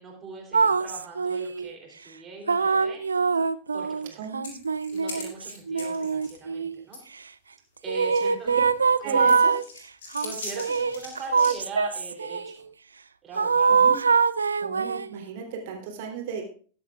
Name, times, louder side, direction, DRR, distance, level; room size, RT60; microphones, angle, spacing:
voice 1, 0.0-3.0 3.4-4.3 4.9-7.0 7.8-8.5 9.0-9.3 10.2-12.6 13.2-13.8, right 3 dB, 25° right, -1 dB, 3.3 m, -41 dB
sound 1, 0.5-1.7 2.5-6.8 7.9-9.6 10.1-12.5 13.4-15.2, right 5 dB, 75° right, 0.4 m, -23 dB
voice 2, 4.2-4.6 8.2-8.3 9.0-9.5 13.7-13.9 14.6-16.5, right 6 dB, 50° right, 1 dB, 3.2 m, -35 dB
sound 2, 4.4-6.4 6.9-7.0 7.5-7.6 8.2-8.9 9.3-11.6, left 3 dB, 60° left, 5.0 m, -41 dB
21.0 x 8.0 x 2.5 m, 0.43 s
figure-of-eight pair, 90°, 0 cm